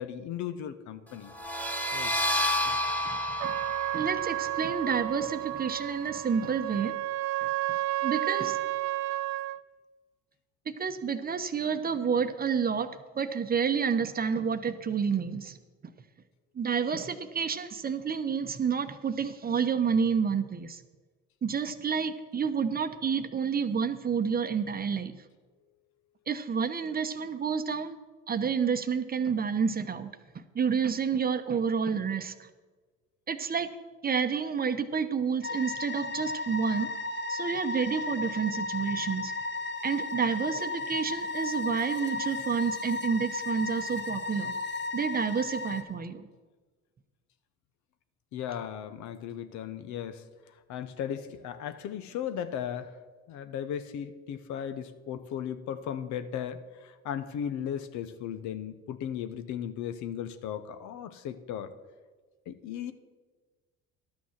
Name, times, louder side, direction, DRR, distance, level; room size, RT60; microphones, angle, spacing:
voice 1, 0.0-1.3 1.9-2.1 48.3-53.0 53.3-61.8 62.5-62.9, left 9 dB, 65° left, 11 dB, 0.8 m, -36 dB
sound 1, 1.3-6.7, left 1 dB, 5° left, 1.5 m, -32 dB
voice 2, 3.1-3.6 3.9-6.9 7.4-7.5 8.0-8.6 10.8-12.9 13.2-15.6 16.5-20.8 21.4-25.2 26.3-28.0 28.3-32.5 33.3-33.7 34.0-36.9 37.3-39.3 39.8-44.5 44.9-46.3, right 6 dB, 30° right, 9 dB, 0.8 m, -29 dB
Trumpet, 3.4-9.6, right 15 dB, 75° right, 0.6 m, -32 dB
sound 2, 35.4-45.8, left 3 dB, 35° left, 1.3 m, -34 dB
11.5 x 6.2 x 7.3 m, 1.4 s
supercardioid pair, 75°, 31 cm